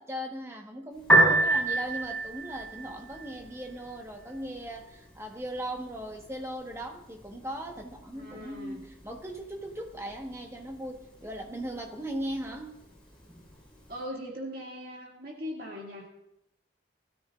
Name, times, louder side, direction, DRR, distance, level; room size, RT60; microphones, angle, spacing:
voice 1, 0.0-12.8, right 1 dB, 15° right, 2 dB, 1.3 m, -38 dB
Piano, 1.0-14.0, right 2 dB, 5° left, 5.8 m, -32 dB
voice 2, 8.1-8.8 13.9-16.1, equal, 50° right, -2 dB, 2.3 m, -40 dB
21.0 x 13.0 x 2.5 m, 0.82 s
head